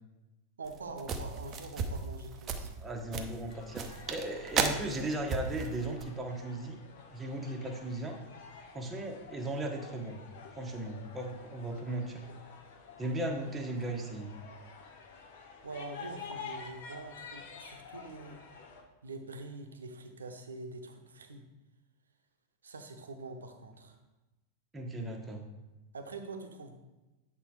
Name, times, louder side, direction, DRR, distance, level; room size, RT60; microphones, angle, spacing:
voice 1, 0.6-2.8 15.6-18.4 19.0-21.4 22.6-24.0 25.9-26.7, right 3 dB, 70° right, 6 dB, 0.8 m, -44 dB
sound 1, 0.7-6.0, right 5 dB, 30° right, 0.6 m, -35 dB
voice 2, 2.8-6.8 7.1-8.2 8.7-10.2 10.5-12.2 13.0-14.4 24.7-25.4, right 1 dB, 10° right, 1 dB, 1.1 m, -37 dB
sound 2, 3.5-18.8, left 5 dB, 55° left, 0.9 m, -50 dB
8.4 x 3.4 x 4.6 m, 1.1 s
figure-of-eight pair, 90°, 0 cm